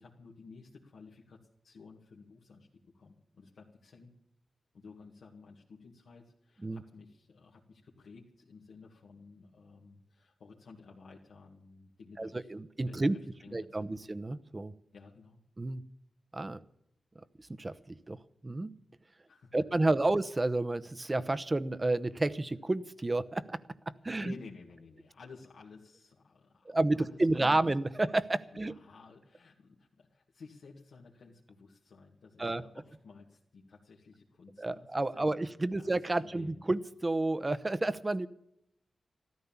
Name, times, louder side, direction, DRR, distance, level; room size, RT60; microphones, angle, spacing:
voice 1, 0.0-4.1 4.7-12.5 12.9-14.1 14.9-15.4 19.3-19.7 24.0-27.6 28.5-35.2 35.6-36.6, left 4 dB, 85° left, -2 dB, 2.0 m, -54 dB
voice 2, 12.2-13.1 13.5-14.7 15.6-15.8 16.3-16.6 17.5-18.2 18.4-18.7 19.5-23.6 23.9-24.3 26.7-28.7 32.4-32.6 34.6-38.3, right 2 dB, 30° right, 14 dB, 0.8 m, -30 dB
13.5 x 13.5 x 7.2 m, 0.76 s
cardioid pair, 70°, 0 cm